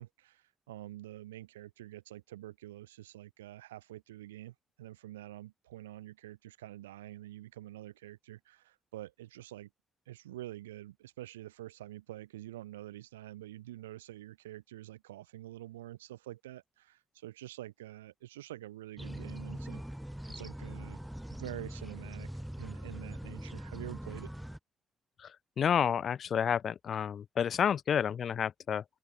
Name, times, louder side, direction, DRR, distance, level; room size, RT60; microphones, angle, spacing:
voice 1, 0.0-9.7 10.1-19.8 20.3-21.0 21.3-22.3 22.6-24.3, right 15 dB, 85° right, 0.7 m, -47 dB
sound 1, 19.0-24.6, equal, 5° right, 2.1 m, -42 dB
voice 2, 25.2-28.8, left 8 dB, 55° left, 0.6 m, -30 dB
open air
hypercardioid pair, 40°, 0 cm